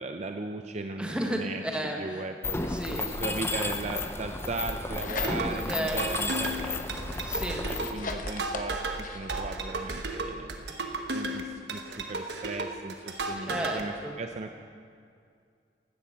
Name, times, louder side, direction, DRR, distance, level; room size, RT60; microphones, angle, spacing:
voice 1, 0.0-2.6 2.9-7.4 7.7-10.7 11.1-14.5, right 3 dB, 40° right, 5 dB, 0.5 m, -37 dB
voice 2, 1.0-2.2 2.6-3.5 5.4-6.0 7.2-7.6 10.7-11.0 13.5-14.2, right 1 dB, 5° right, 1 dB, 1.4 m, -34 dB
Mechanisms, 2.4-7.9, left 3 dB, 15° left, 0.5 m, -32 dB
sound 1, 4.6-5.7 6.2-9.4, left 4 dB, 50° left, 1.0 m, -41 dB
sound 2, 5.2-13.8, right 2 dB, 75° right, 1.1 m, -34 dB
16.0 x 12.5 x 4.3 m, 2.3 s
head